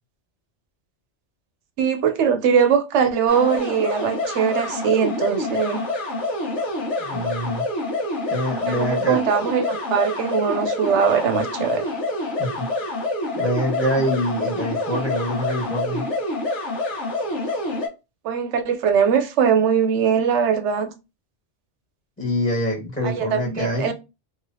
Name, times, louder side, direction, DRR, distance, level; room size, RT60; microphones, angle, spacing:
voice 1, 1.8-5.8 8.7-11.9 18.2-20.9 23.0-23.9, right 7 dB, 75° right, 0.9 m, -21 dB
sound 1, 3.3-17.9, left 2 dB, 75° left, 1.4 m, -27 dB
voice 2, 7.0-7.6 8.3-9.2 12.4-12.7 13.3-16.0 22.2-23.9, equal, 5° left, 1.3 m, -25 dB
3.0 x 3.0 x 2.7 m
omnidirectional pair, 1.2 m